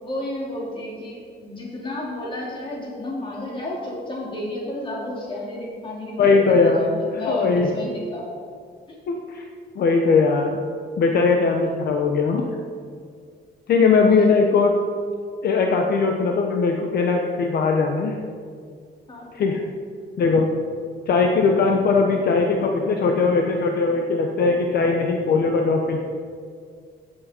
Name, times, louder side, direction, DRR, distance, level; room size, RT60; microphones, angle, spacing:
voice 1, 0.0-8.2 8.9-9.0 14.0-14.4 19.1-19.3, left 1 dB, 25° left, -3 dB, 3.0 m, -31 dB
voice 2, 6.2-6.9 7.3-7.7 9.1-9.4 9.8-10.6 11.0-12.5 13.7-14.7 15.4-18.2 19.3-19.6 20.2-20.5 21.1-26.0, left 4 dB, 60° left, 2 dB, 1.0 m, -19 dB
15.5 x 8.6 x 4.4 m, 2.1 s
cardioid pair, 170°, 19 cm